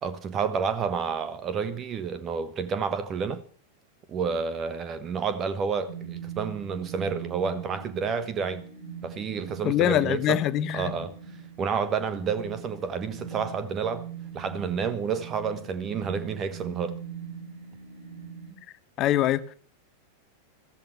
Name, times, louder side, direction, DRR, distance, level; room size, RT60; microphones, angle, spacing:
voice 1, 0.0-3.4 4.1-8.6 9.0-10.4 10.7-11.1 11.6-14.1 14.3-17.0, right 6 dB, 25° right, 1.1 m, -30 dB
sound 1, 5.9-18.5, right 7 dB, 55° right, 5.0 m, -41 dB
voice 2, 9.6-10.9 19.0-19.5, left 12 dB, 35° left, 0.9 m, -24 dB
14.5 x 14.5 x 6.0 m
figure-of-eight pair, 90°, 0 cm